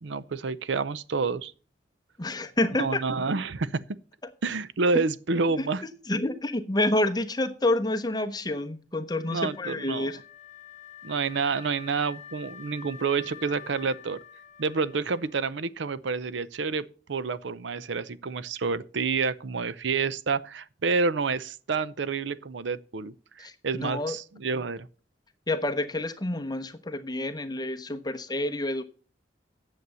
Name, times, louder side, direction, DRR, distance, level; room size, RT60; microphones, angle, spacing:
voice 1, 0.0-1.5 2.7-3.8 4.4-5.8 9.3-10.1 11.0-14.2 14.6-24.9, right 4 dB, 75° right, 0.6 m, -29 dB
voice 2, 2.2-3.0 4.9-5.0 5.6-5.7 6.1-10.2 23.4-24.2 25.5-28.8, left 2 dB, 20° left, 1.0 m, -28 dB
Wind instrument woodwind instrument, 9.1-16.1, left 8 dB, 40° left, 0.8 m, -48 dB
9.4 x 7.7 x 6.9 m
head